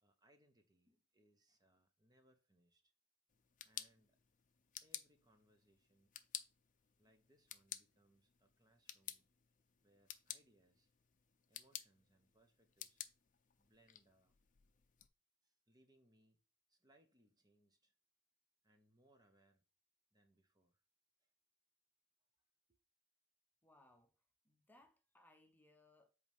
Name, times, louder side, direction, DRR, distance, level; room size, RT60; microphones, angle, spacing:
voice 1, 0.0-2.9 3.6-4.2 4.8-6.1 7.0-9.3 9.8-10.9 11.5-13.0 13.6-14.4 15.4-16.4 16.7-17.9 18.6-19.6 20.1-20.8 21.2-21.3 22.7-22.8, right 1 dB, 20° right, 1.0 m, -74 dB
sound 1, 3.3-15.1, left 11 dB, 45° left, 0.6 m, -54 dB
voice 2, 23.6-24.2 24.4-26.1, left 1 dB, 10° left, 1.0 m, -68 dB
8.0 x 4.8 x 3.5 m
head